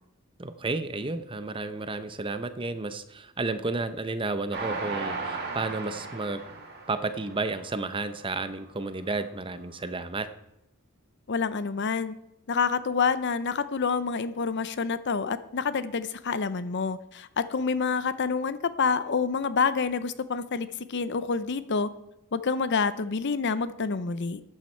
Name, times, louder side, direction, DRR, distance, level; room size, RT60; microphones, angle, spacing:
voice 1, 0.4-6.4 6.9-10.3, right 3 dB, 25° right, 11 dB, 0.7 m, -32 dB
Train, 4.5-8.0 8.5-8.6 8.9-9.0, right 3 dB, 50° right, 2.4 m, -36 dB
voice 2, 11.3-12.1 12.5-21.9 22.3-24.4, left 5 dB, 55° left, 14 dB, 0.6 m, -28 dB
13.5 x 9.3 x 4.4 m, 0.86 s
head